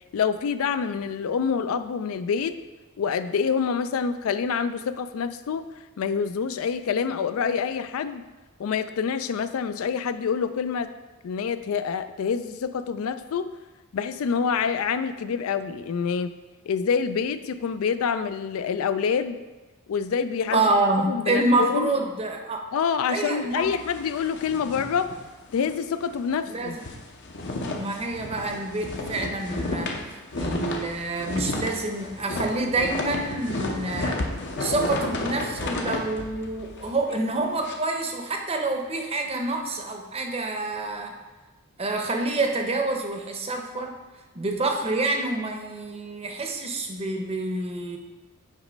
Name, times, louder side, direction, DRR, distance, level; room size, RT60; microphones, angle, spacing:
voice 1, 0.1-2.5 3.0-5.6 6.0-8.2 8.6-10.9 11.2-13.5 13.9-16.3 16.7-19.4 19.9-20.7 21.1-21.9 22.7-25.1 25.5-26.8, left 6 dB, 70° left, 11 dB, 0.3 m, -26 dB
voice 2, 20.5-22.6 23.1-23.7 26.5-26.8 27.7-30.0 30.4-34.3 34.6-41.2 41.8-44.0 44.3-48.0, right 2 dB, 25° right, 3 dB, 0.7 m, -27 dB
sound 1, 23.5-25.8 26.1-26.2 26.6-37.7, left 2 dB, 55° left, 0.7 m, -32 dB
8.2 x 3.1 x 5.1 m, 1.2 s
head